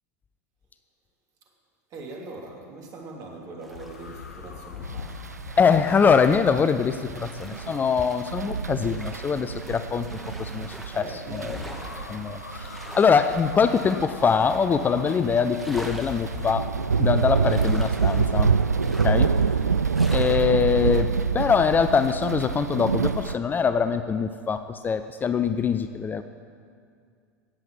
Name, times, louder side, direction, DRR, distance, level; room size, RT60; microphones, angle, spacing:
voice 1, 1.9-5.4 10.9-12.1, right 3 dB, 40° right, 0 dB, 3.0 m, -41 dB
sound 1, 3.6-20.4, equal, ahead, 1.8 m, -45 dB
sound 2, 3.7-8.0 11.5-17.1, left 7 dB, 75° left, 0.7 m, -42 dB
sound 3, 4.8-23.3, right 5 dB, 85° right, 0.3 m, -27 dB
voice 2, 5.6-10.1 10.4-11.6 12.1-16.7 17.0-18.5 19.0-19.3 20.1-26.2, left 6 dB, 20° left, 10 dB, 0.5 m, -23 dB
17.5 x 7.7 x 7.4 m, 2.3 s
figure-of-eight pair, 80°, 9 cm